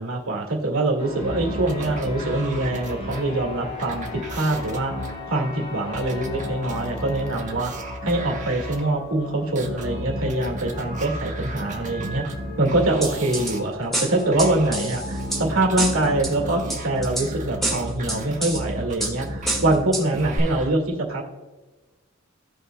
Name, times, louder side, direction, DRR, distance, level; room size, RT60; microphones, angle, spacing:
voice 1, 0.0-4.9 5.3-7.7 8.0-12.3 12.6-15.0 15.4-21.2, right 2 dB, 90° right, 0 dB, 1.9 m, -24 dB
sound 1, 1.0-20.4, left 2 dB, 50° left, 1.6 m, -39 dB
sound 2, 1.2-8.8 9.5-13.6 14.3-20.7, right 1 dB, 35° right, 1.0 m, -34 dB
sound 3, 13.0-13.5 13.9-15.4 15.8-16.3 16.7-17.3 17.6-18.6 19.0-19.1 19.5-20.0 20.4-20.5, right 1 dB, ahead, 1.6 m, -27 dB
16.0 x 5.6 x 2.2 m, 1.2 s
head